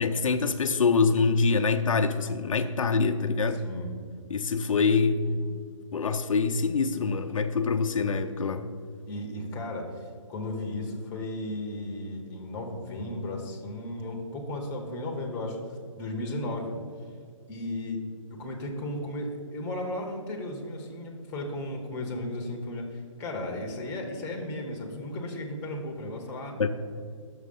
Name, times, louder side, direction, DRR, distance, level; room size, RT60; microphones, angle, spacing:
voice 1, 0.0-3.6 4.3-5.2 5.9-8.7 26.6-26.7, left 4 dB, 70° left, 7 dB, 0.5 m, -25 dB
voice 2, 3.5-3.9 5.2-5.4 9.0-15.6 16.0-16.8 17.5-18.0 18.3-26.6, left 1 dB, 15° left, 2 dB, 0.9 m, -35 dB
6.4 x 6.3 x 5.3 m, 2.1 s
hypercardioid pair, 150°, 17 cm